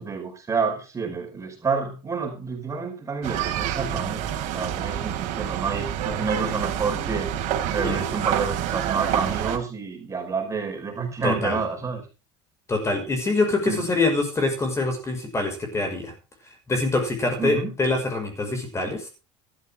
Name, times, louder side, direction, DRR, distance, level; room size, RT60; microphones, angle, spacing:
voice 1, 0.0-4.2 4.5-7.3 7.7-12.0 13.7-13.8 17.4-17.7, right 5 dB, 20° right, 2 dB, 5.1 m, -29 dB
sound 1, 3.2-9.6, right 10 dB, 60° right, 3.6 m, -28 dB
voice 2, 11.2-11.6 12.7-16.1 16.7-19.1, left 2 dB, 20° left, 5 dB, 5.7 m, -25 dB
15.0 x 13.0 x 3.7 m, 0.32 s
supercardioid pair, 120°, 14 cm